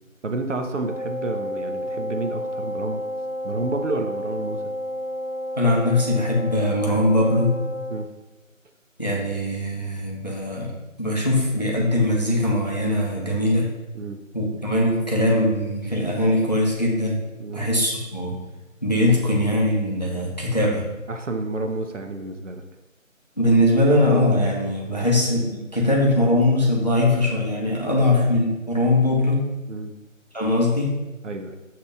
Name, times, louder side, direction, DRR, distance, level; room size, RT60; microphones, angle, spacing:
voice 1, 0.2-3.0 3.4-4.6 7.9-8.1 13.9-14.2 17.4-17.7 20.5-20.8 21.1-22.7 24.9-25.1 29.7-29.9 31.2-31.6, right 2 dB, 65° right, 5 dB, 0.5 m, -30 dB
Wind instrument woodwind instrument, 0.8-8.1, equal, 90° left, 0.7 m, -31 dB
voice 2, 5.6-7.5 9.0-10.7 11.0-13.7 14.3-17.2 17.5-18.3 18.8-20.8 23.4-25.4 25.7-29.4 30.3-31.0, left 1 dB, 30° left, -2 dB, 0.6 m, -21 dB
6.6 x 2.8 x 2.4 m, 1.0 s
figure-of-eight pair, 165°, 40 cm